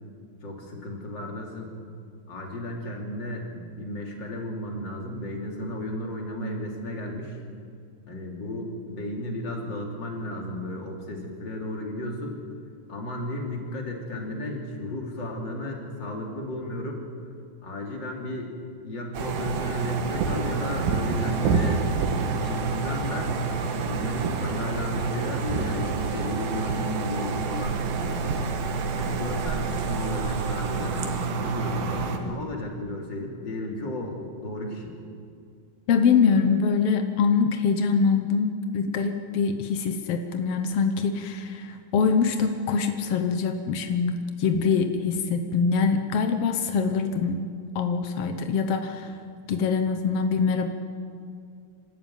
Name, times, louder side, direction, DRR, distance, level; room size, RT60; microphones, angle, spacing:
voice 1, 0.4-1.7 2.3-7.4 8.1-12.4 12.9-17.0 17.6-18.5 18.8-21.9 22.3-23.4 23.8-28.4 28.9-35.0, left 1 dB, 30° left, 0 dB, 3.3 m, -34 dB
sound 1, 19.1-32.2, right 4 dB, 75° right, 3.2 m, -28 dB
voice 2, 35.9-47.4 47.7-49.1 49.5-50.7, left 5 dB, 80° left, 6 dB, 1.3 m, -24 dB
27.0 x 13.0 x 9.1 m, 2.3 s
omnidirectional pair, 4.2 m